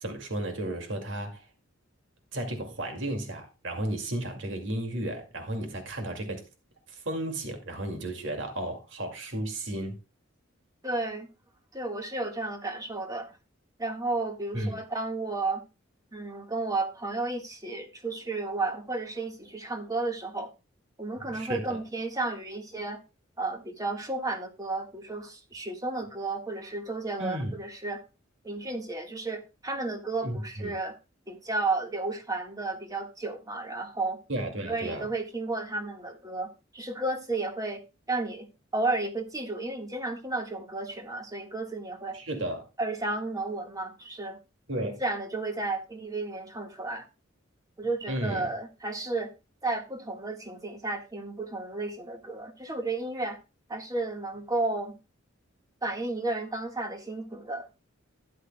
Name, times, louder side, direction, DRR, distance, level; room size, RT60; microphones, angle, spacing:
voice 1, 0.0-1.5 2.3-6.5 6.9-9.9 14.5-14.7 21.3-21.8 27.2-27.5 30.2-30.7 34.3-35.1 42.1-42.7 44.7-45.0 48.1-48.5, right 1 dB, 65° right, 2.3 m, -33 dB
voice 2, 10.8-11.3 11.7-13.3 13.8-15.6 16.1-20.5 21.0-23.0 23.4-28.0 28.4-31.0 31.3-34.2 34.7-37.8 38.1-38.5 38.7-42.2 42.8-44.4 44.8-47.1 47.8-49.3 49.6-53.4 53.7-55.0 55.8-57.7, right 2 dB, 15° right, 1.6 m, -32 dB
13.0 x 9.9 x 2.2 m
head